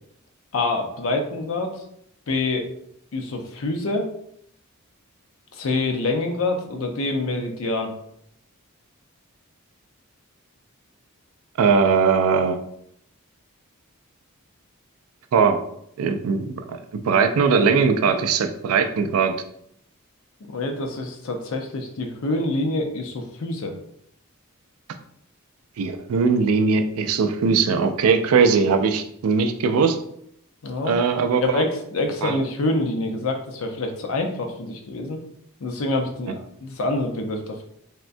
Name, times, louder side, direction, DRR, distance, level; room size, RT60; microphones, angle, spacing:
voice 1, 0.5-1.7 2.3-2.7 3.1-4.1 5.5-7.9 20.4-23.7 30.6-31.0 31.4-35.2 35.6-37.6, left 2 dB, 65° left, 3 dB, 0.5 m, -26 dB
voice 2, 11.6-12.6 15.3-15.6 16.0-16.8 17.0-19.3 25.8-30.0 30.8-31.6 32.2-32.4, right 5 dB, 75° right, 8 dB, 0.3 m, -20 dB
3.5 x 2.1 x 2.5 m, 0.71 s
head